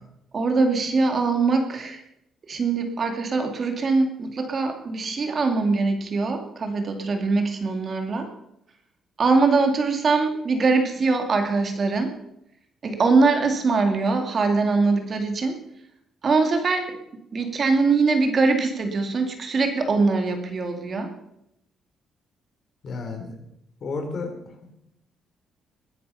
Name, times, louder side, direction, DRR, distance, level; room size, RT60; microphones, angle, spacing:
voice 1, 0.3-2.0 2.5-8.3 9.2-12.2 12.8-15.6 16.2-17.0 17.3-21.1, right 4 dB, 40° right, 6 dB, 2.4 m, -22 dB
voice 2, 22.8-23.4 23.8-24.3, left 4 dB, 50° left, 4 dB, 3.8 m, -31 dB
21.0 x 10.0 x 5.6 m, 0.78 s
cardioid pair, 140°, 0 cm